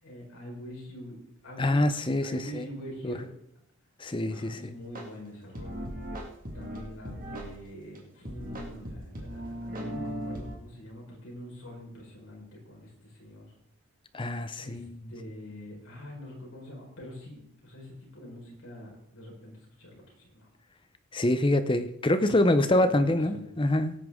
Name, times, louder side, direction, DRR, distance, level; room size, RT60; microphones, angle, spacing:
voice 1, 0.0-1.8 2.2-3.3 4.3-5.9 6.5-13.5 14.6-20.5 22.2-23.5, equal, 65° left, -2 dB, 4.9 m, -45 dB
voice 2, 1.6-2.6 3.0-3.1 4.0-4.6 14.1-14.9 21.1-23.9, left 1 dB, 20° left, 11 dB, 0.6 m, -25 dB
sound 1, 5.0-5.1 5.6-7.5 8.0-8.1 8.3-10.6, equal, 40° right, 2.1 m, -37 dB
17.0 x 9.4 x 3.7 m, 0.77 s
head